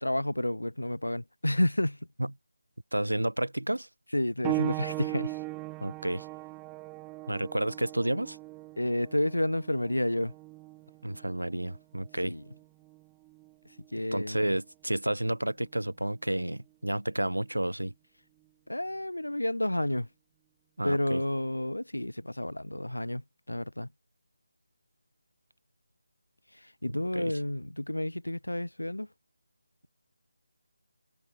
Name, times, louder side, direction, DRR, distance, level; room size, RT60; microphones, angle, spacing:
voice 1, 0.0-2.0 4.1-5.4 8.8-10.3 12.2-12.4 13.9-14.4 18.7-20.1 20.8-23.2 23.5-23.9 26.6-29.1, left 1 dB, 80° left, 0.5 m, -30 dB
voice 2, 2.9-3.9 5.8-6.3 7.3-8.4 11.0-12.4 14.1-17.9 20.8-21.2 27.1-27.3, right 1 dB, 80° right, 0.4 m, -31 dB
sound 1, 4.4-14.7 15.6-15.7 16.5-16.6, right 24 dB, 10° right, 0.5 m, -39 dB
figure-of-eight pair, 155°, 0 cm